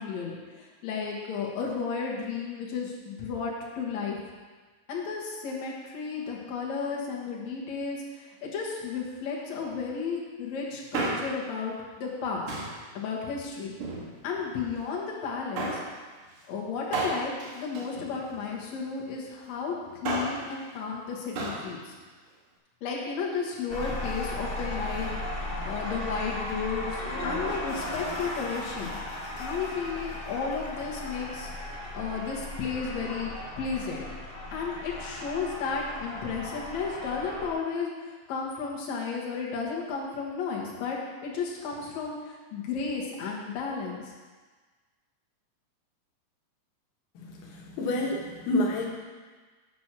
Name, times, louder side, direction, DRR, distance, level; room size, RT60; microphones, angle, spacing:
voice 1, 0.0-4.2 4.9-12.4 12.9-13.7 14.2-15.8 16.5-19.7 20.0-21.9 22.8-29.0 29.4-33.3 33.6-34.1 34.5-44.1, left 5 dB, 65° left, -3 dB, 2.6 m, -33 dB
Male speech man speaking, 10.7-11.5 12.5-12.9 13.7-14.5 15.6-15.9 16.9-18.6 19.8-20.5 21.4-21.7 22.0-22.1, right 3 dB, 70° right, 2.4 m, -33 dB
sound 1, 23.7-37.5, left 1 dB, 45° left, 0.7 m, -36 dB
voice 2, 47.2-48.8, left 1 dB, 90° left, -1 dB, 2.8 m, -29 dB
8.4 x 6.2 x 6.0 m, 1.4 s
omnidirectional pair, 3.7 m